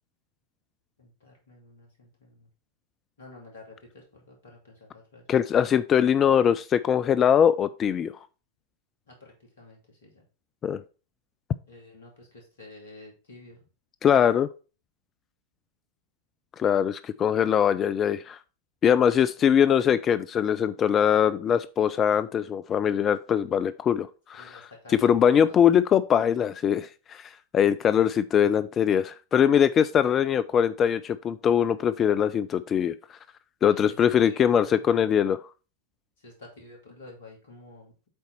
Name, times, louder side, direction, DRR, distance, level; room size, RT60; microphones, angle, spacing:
voice 1, 1.0-2.5 3.2-5.3 9.1-10.2 11.7-13.7 19.4-19.5 24.4-25.6 33.7-34.9 36.2-37.9, left 2 dB, 60° left, 0 dB, 2.7 m, -50 dB
voice 2, 5.3-8.1 10.6-10.8 14.0-14.5 16.6-18.4 18.8-33.0 33.6-35.4, left 8 dB, 25° left, 13 dB, 0.3 m, -22 dB
7.7 x 4.1 x 4.4 m, 0.34 s
figure-of-eight pair, 90°, 0 cm